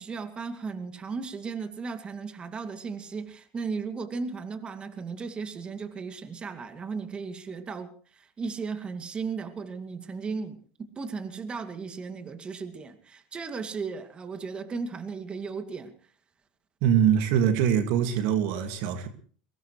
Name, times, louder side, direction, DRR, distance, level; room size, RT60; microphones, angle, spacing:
voice 1, 0.0-15.9, right 5 dB, 30° right, 2.4 m, -36 dB
voice 2, 16.8-19.1, right 9 dB, 65° right, 2.1 m, -23 dB
23.0 x 19.0 x 3.3 m
hypercardioid pair, 80°, 4 cm